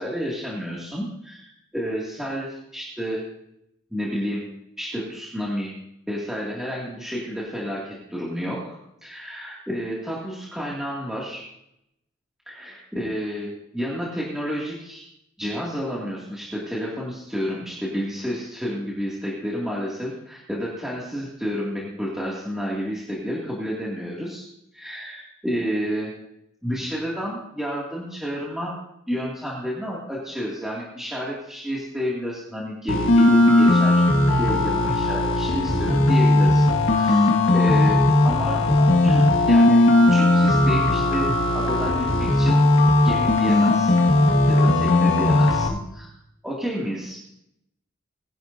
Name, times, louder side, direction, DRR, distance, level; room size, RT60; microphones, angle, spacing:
voice 1, 0.0-3.2 3.9-4.4 4.8-5.7 6.1-11.4 12.5-15.1 15.4-24.4 24.7-26.1 26.6-28.8 29.1-34.0 34.4-38.7 39.0-42.6 43.0-44.0 44.5-46.1 46.4-47.2, equal, ahead, -6 dB, 2.2 m, -30 dB
sound 1, 32.9-45.7, left 2 dB, 70° left, 1.7 m, -18 dB
20.5 x 11.5 x 2.7 m, 0.80 s
head